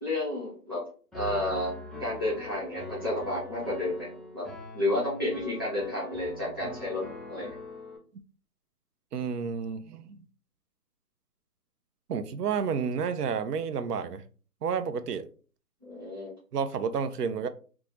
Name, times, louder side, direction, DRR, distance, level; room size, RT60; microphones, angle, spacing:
voice 1, 0.0-0.8 1.1-1.7 2.0-4.1 4.3-4.5 4.7-7.0 7.3-7.5 15.8-16.3, left 1 dB, 15° right, -9 dB, 0.7 m, -31 dB
Piano, 1.1-8.0, left 2 dB, ahead, 0.4 m, -42 dB
voice 2, 9.1-10.2 12.1-14.2 14.6-15.3 16.5-17.5, right 6 dB, 85° right, 10 dB, 0.5 m, -30 dB
2.5 x 2.3 x 3.0 m, 0.39 s
hypercardioid pair, 175°, 46 cm